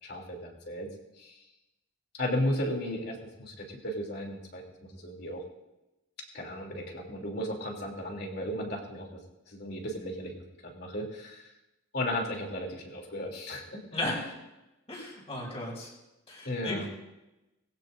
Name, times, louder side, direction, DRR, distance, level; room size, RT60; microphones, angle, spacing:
voice 1, 0.0-0.9 1.2-1.4 2.1-4.6 4.9-5.4 6.3-9.1 9.5-11.5 11.9-13.8 16.4-16.9, left 1 dB, 55° left, 0 dB, 3.1 m, -35 dB
voice 2, 13.9-14.3 14.9-15.9 16.3-16.9, left 1 dB, 30° left, -2 dB, 5.9 m, -35 dB
20.5 x 16.0 x 2.7 m, 0.98 s
head